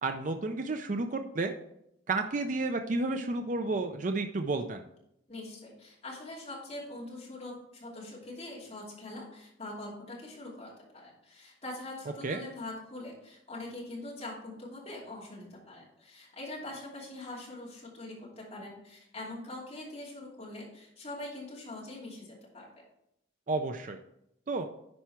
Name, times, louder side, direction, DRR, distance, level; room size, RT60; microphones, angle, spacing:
voice 1, 0.0-1.5 2.1-4.8 12.2-12.4 23.5-24.0 24.5-24.7, right 3 dB, 40° right, 6 dB, 0.4 m, -31 dB
voice 2, 5.3-22.8, left 2 dB, 30° left, -5 dB, 2.8 m, -43 dB
10.5 x 4.7 x 4.4 m, 0.80 s
head